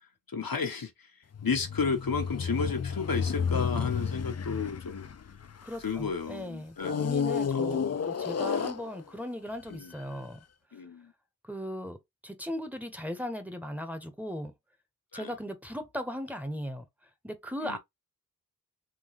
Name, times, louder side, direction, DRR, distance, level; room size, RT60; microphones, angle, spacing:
voice 1, 0.3-1.1 1.4-5.1 5.8-8.1 8.5-8.7 9.7-9.9 10.7-11.1 15.1-15.3 17.6-17.8, left 5 dB, 85° left, 1.1 m, -33 dB
sound 1, 1.3-6.1 6.8-9.3 10.0-10.1, left 6 dB, 50° left, 0.5 m, -31 dB
voice 2, 5.6-10.4 11.4-14.5 15.1-16.9 17.2-17.8, equal, 5° right, 1.0 m, -38 dB
3.8 x 3.0 x 3.0 m
wide cardioid pair, 40°, 34 cm